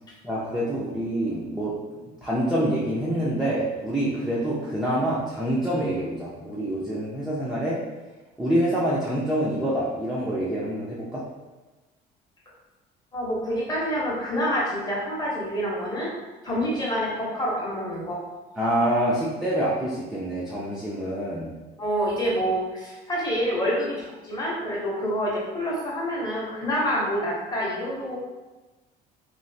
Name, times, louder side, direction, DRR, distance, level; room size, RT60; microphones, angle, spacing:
voice 1, 0.2-7.8 8.4-11.2 18.6-21.5, right 1 dB, ahead, -8 dB, 0.4 m, -26 dB
voice 2, 13.1-16.1 16.4-18.2 21.8-28.2, equal, 20° left, -4 dB, 0.8 m, -27 dB
3.1 x 2.4 x 2.6 m, 1.2 s
cardioid pair, 145°, 18 cm